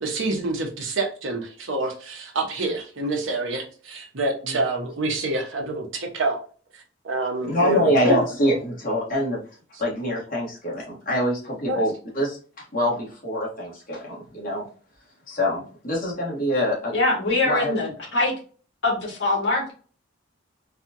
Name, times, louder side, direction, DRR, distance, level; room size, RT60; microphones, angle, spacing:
voice 1, 0.0-6.4 6.7-8.2 11.7-11.8, right 2 dB, 80° right, 2 dB, 1.0 m, -27 dB
voice 2, 7.4-9.4 9.8-14.6 15.3-16.9 17.4-17.7, equal, 45° left, -4 dB, 1.6 m, -25 dB
voice 3, 16.9-18.3 18.8-19.7, left 2 dB, 65° left, -3 dB, 1.8 m, -23 dB
4.2 x 2.4 x 2.8 m, 0.40 s
head